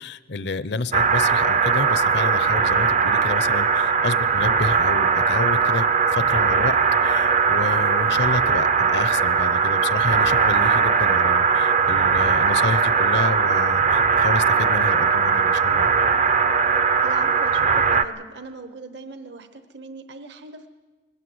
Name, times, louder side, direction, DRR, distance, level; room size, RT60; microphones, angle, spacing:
voice 1, 0.0-15.9, left 3 dB, 60° left, 15 dB, 0.7 m, -29 dB
sound 1, 0.9-18.0, right 5 dB, 35° right, 0.6 m, -19 dB
voice 2, 17.0-20.7, right 3 dB, 60° right, 9 dB, 1.1 m, -39 dB
20.5 x 17.5 x 7.9 m, 1.3 s
head